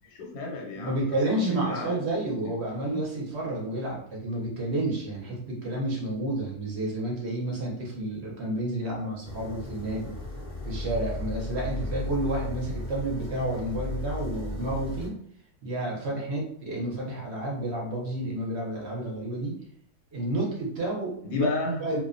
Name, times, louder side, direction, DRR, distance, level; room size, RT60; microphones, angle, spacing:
voice 1, 0.0-2.3 2.9-3.0 21.2-21.9, left 1 dB, 90° left, -1 dB, 1.2 m, -32 dB
voice 2, 0.8-10.1 10.6-15.2 15.6-19.6 20.1-21.5 21.8-22.0, right 1 dB, 55° right, -3 dB, 0.8 m, -30 dB
sound 1, 9.2-15.1, left 2 dB, 55° left, 0.4 m, -35 dB
2.7 x 2.0 x 2.4 m, 0.68 s
omnidirectional pair, 1.6 m